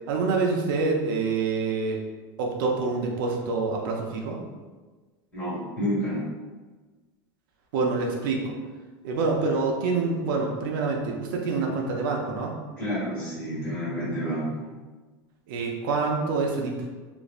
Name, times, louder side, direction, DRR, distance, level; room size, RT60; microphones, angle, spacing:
voice 1, 0.1-2.0 2.4-4.4 7.7-8.5 9.0-12.6 15.5-16.8, right 4 dB, 75° right, 0 dB, 0.5 m, -26 dB
voice 2, 5.3-6.2 12.8-14.7, equal, 15° left, -9 dB, 1.3 m, -29 dB
3.0 x 2.5 x 2.4 m, 1.3 s
supercardioid pair, 165°, 11 cm